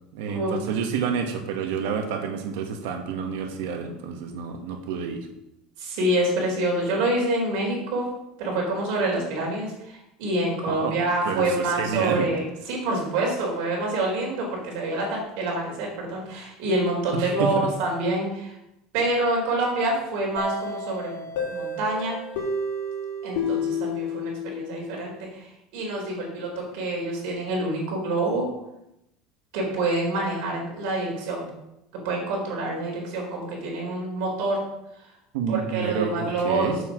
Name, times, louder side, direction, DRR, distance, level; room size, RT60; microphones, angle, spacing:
voice 1, 0.1-5.3 10.7-12.3 17.2-17.7 35.3-36.8, right 6 dB, 75° right, 5 dB, 1.6 m, -29 dB
voice 2, 5.8-8.1 8.4-18.6 18.9-22.2 23.2-28.5 29.5-31.5 32.0-34.6 35.5-36.7, right 2 dB, 60° right, -1 dB, 4.0 m, -27 dB
sound 1, 20.4-25.0, left 3 dB, 80° left, 3.4 m, -30 dB
7.4 x 7.0 x 6.2 m, 0.86 s
cardioid pair, 170°, 0 cm